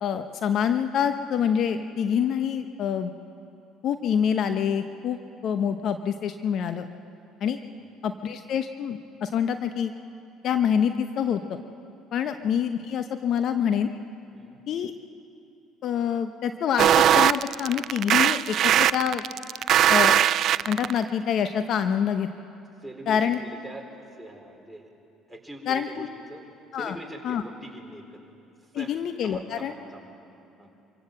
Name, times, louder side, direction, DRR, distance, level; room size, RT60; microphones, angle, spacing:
voice 1, 0.0-3.1 3.8-5.2 5.4-6.9 7.4-7.6 8.0-9.9 10.4-11.6 12.1-13.9 14.7-14.9 15.8-19.2 19.9-20.2 20.7-22.3 23.1-23.4 25.7-26.1 26.7-27.0 27.2-27.4 28.7-29.7, left 8 dB, 60° left, 9 dB, 0.9 m, -26 dB
sound 1, 16.8-21.0, right 11 dB, 60° right, 0.4 m, -19 dB
voice 2, 22.8-24.9 25.3-26.5 26.7-28.2 28.6-28.9 29.2-30.1 30.6-30.7, right 1 dB, ahead, 0 dB, 4.4 m, -43 dB
25.5 x 17.0 x 7.6 m, 2.8 s
hypercardioid pair, 65°, 0 cm